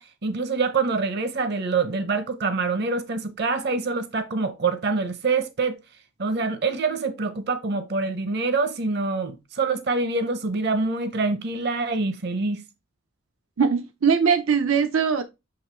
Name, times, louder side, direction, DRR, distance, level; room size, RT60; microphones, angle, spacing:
voice 1, 0.0-5.8 6.2-12.6, right 4 dB, 55° right, 0.7 m, -25 dB
voice 2, 13.6-15.2, right 6 dB, 90° right, 0.6 m, -21 dB
7.8 x 3.1 x 4.4 m
head